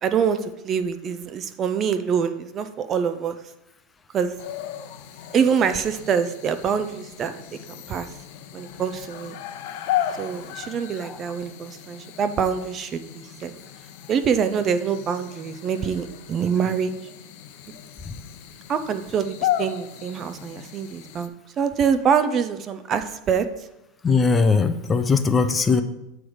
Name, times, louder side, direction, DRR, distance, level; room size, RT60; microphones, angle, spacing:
voice 1, 0.0-3.4 4.1-4.3 5.3-7.4 7.7-8.1 8.5-9.4 10.2-13.5 14.1-16.9 18.7-21.3 21.6-23.5, right 7 dB, 35° right, 10 dB, 0.6 m, -25 dB
sound 1, 4.4-21.3, left 11 dB, 65° left, 0.7 m, -35 dB
voice 2, 24.0-25.8, left 4 dB, 20° left, 9 dB, 0.5 m, -19 dB
8.6 x 3.3 x 6.3 m, 0.92 s
supercardioid pair, 125°, 0 cm